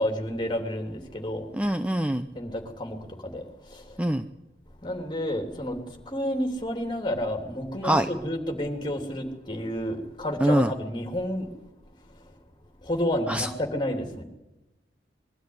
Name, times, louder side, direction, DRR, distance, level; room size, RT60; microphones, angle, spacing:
voice 1, 0.0-1.5 2.3-4.0 4.8-11.5 12.1-12.2 12.8-14.2, left 1 dB, 25° left, 4 dB, 3.1 m, -30 dB
voice 2, 1.5-2.3 4.0-4.3 7.8-8.1 10.4-10.7 13.3-13.5, right 1 dB, 5° right, 8 dB, 0.7 m, -24 dB
22.0 x 13.0 x 9.6 m, 1.0 s
head